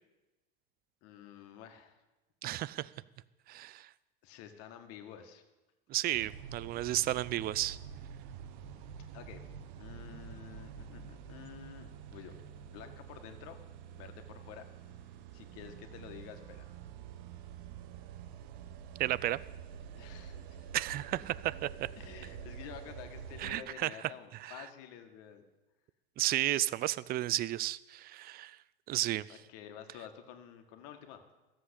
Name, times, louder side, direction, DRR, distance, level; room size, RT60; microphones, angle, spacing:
voice 1, 1.0-2.0 4.2-5.4 9.1-9.5 9.8-12.4 12.7-13.6 13.9-14.7 15.3-16.6 19.9-20.7 22.0-25.4 29.3-31.2, left 9 dB, 55° left, 6 dB, 1.9 m, -50 dB
voice 2, 2.4-2.9 3.5-3.9 5.9-7.8 19.0-19.4 20.7-21.9 23.4-23.9 24.4-24.5 26.2-28.6 28.9-29.3, right 15 dB, 30° right, 20 dB, 0.4 m, -33 dB
sound 1, 6.1-23.6, right 8 dB, 60° right, 1.0 m, -48 dB
13.5 x 7.6 x 8.3 m, 1.1 s
hypercardioid pair, 105°, 29 cm